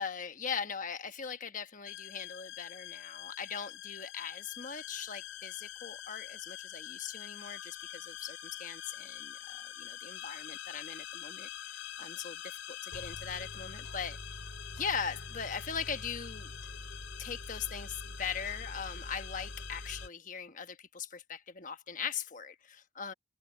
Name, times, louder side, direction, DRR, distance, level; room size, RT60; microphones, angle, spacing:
voice 1, 0.0-11.5 12.0-12.4 12.8-14.2 14.8-16.5 17.2-23.1, left 6 dB, 40° left, 1.1 m, -40 dB
sound 1, 1.9-20.1, left 7 dB, 85° left, 4.1 m, -44 dB
head